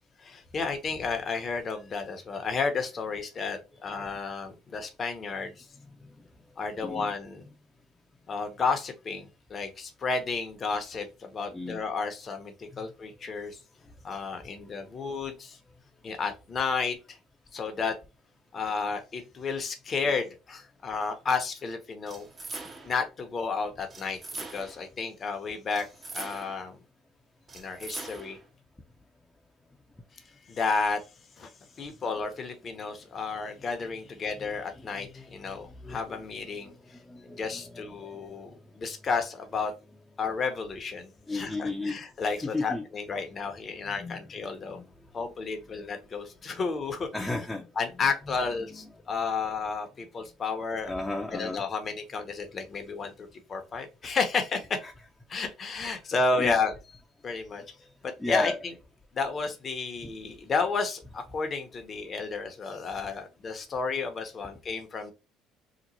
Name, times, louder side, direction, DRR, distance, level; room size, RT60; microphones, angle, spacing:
voice 1, 0.2-5.7 6.6-7.4 8.3-13.6 14.0-15.6 16.0-17.2 17.5-18.0 18.5-22.3 22.8-25.9 26.1-26.8 27.5-28.4 30.5-31.0 31.4-31.5 31.8-37.0 37.4-39.7 40.2-44.8 45.1-47.1 47.8-50.9 51.3-54.8 55.3-56.7 57.2-57.6 58.0-58.5 59.1-65.1, left 4 dB, 40° left, 0.8 m, -32 dB
voice 2, 6.8-7.5 11.5-11.8 33.8-33.9 34.3-34.5 34.8-38.5 41.3-42.9 43.1-43.2 43.9-44.9 45.2-45.7 46.5-46.7 47.1-49.0 50.9-51.6 54.8-54.9 55.7-55.9 56.4-56.7 57.5-57.7 58.2-58.6 60.0-60.1, left 2 dB, 10° left, 0.6 m, -36 dB
sound 1, 22.1-23.0 23.9-24.9 25.7-26.7 27.5-28.5, right 3 dB, 30° right, 0.8 m, -41 dB
2.9 x 2.1 x 4.0 m
supercardioid pair, 75°, 0 cm